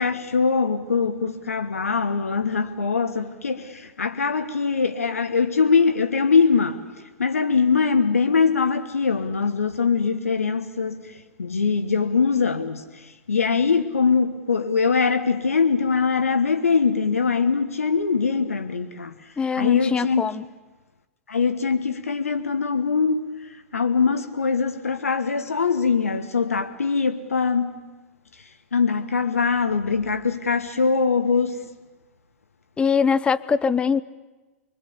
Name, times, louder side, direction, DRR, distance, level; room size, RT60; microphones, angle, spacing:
voice 1, 0.0-6.8 7.2-19.2 19.6-20.3 21.3-27.8 28.7-31.6, left 5 dB, 75° left, 1.3 m, -22 dB
voice 2, 19.4-20.4 32.8-34.0, left 6 dB, 15° left, 0.7 m, -22 dB
25.0 x 23.0 x 7.0 m
figure-of-eight pair, 105°, 8 cm